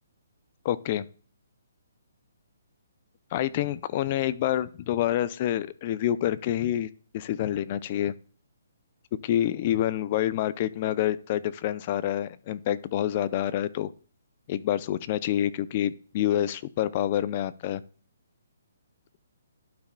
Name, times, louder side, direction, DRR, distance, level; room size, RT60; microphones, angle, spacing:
voice 1, 0.6-1.1 3.3-8.1 9.2-13.9 14.5-17.8, left 12 dB, 30° left, 16 dB, 0.4 m, -27 dB
12.0 x 4.8 x 2.2 m, 0.42 s
hypercardioid pair, 165°, 0 cm